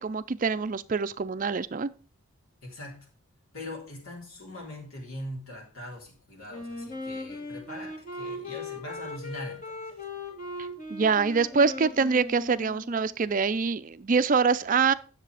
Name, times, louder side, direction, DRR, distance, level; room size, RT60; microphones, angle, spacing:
voice 1, 0.0-1.9 10.9-14.9, right 5 dB, 35° right, 0.4 m, -25 dB
voice 2, 2.6-3.1 3.5-10.0, left 1 dB, 75° left, 3.7 m, -41 dB
Wind instrument woodwind instrument, 6.5-13.2, left 2 dB, 35° left, 2.4 m, -39 dB
10.0 x 6.8 x 4.9 m
head